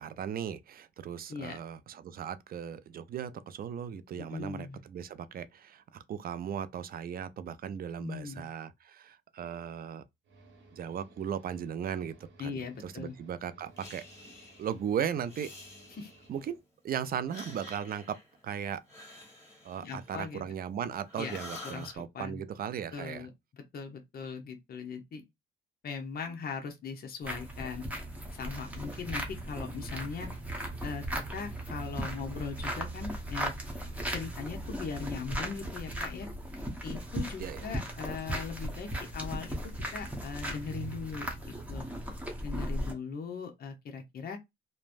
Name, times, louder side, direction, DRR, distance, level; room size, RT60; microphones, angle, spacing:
voice 1, 0.0-10.0 10.7-14.0 14.6-15.5 16.3-16.6 16.8-18.2 18.4-18.8 19.6-23.3 37.4-37.7, right 8 dB, 50° right, 0.4 m, -37 dB
voice 2, 4.2-4.8 8.0-8.5 12.4-13.2 16.0-16.1 19.8-20.5 21.2-21.4 21.6-22.4 22.9-23.3 23.7-25.2 25.8-27.9 28.3-30.3 30.8-31.0 31.3-33.5 34.1-36.3 36.8-41.9 42.4-44.4, left 5 dB, 50° left, 0.8 m, -39 dB
sound 1, 10.2-16.6, right 2 dB, 70° right, 1.1 m, -59 dB
Breathing, 13.8-14.8 15.2-16.5 17.1-20.7 21.1-22.0, left 2 dB, 15° left, 1.8 m, -49 dB
sound 2, 27.2-42.9, right 1 dB, 5° right, 0.9 m, -37 dB
3.1 x 2.1 x 2.5 m
cardioid pair, 90°, 20 cm